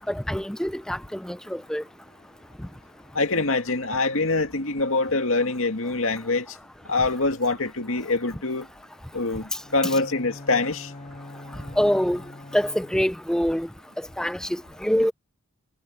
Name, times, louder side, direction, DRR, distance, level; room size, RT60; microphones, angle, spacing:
voice 1, 0.1-1.8 9.8-10.0 11.8-12.2 12.5-13.7 14.2-15.1, equal, 5° left, 0.4 m, -25 dB
voice 2, 3.1-6.6 6.9-8.7 9.1-10.9, left 3 dB, 65° left, 2.2 m, -24 dB
Bowed string instrument, 9.6-13.3, left 2 dB, 30° left, 1.3 m, -43 dB
head